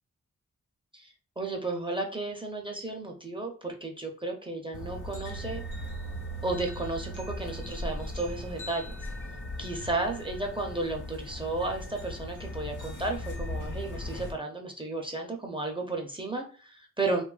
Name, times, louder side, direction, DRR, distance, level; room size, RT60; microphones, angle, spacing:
voice 1, 0.9-5.6 6.4-8.9 9.6-17.2, right 2 dB, 15° right, 1 dB, 0.5 m, -33 dB
sound 1, 4.7-14.3, equal, 75° left, 1.0 m, -38 dB
3.2 x 2.3 x 2.3 m, 0.39 s
wide cardioid pair, 90°, 31 cm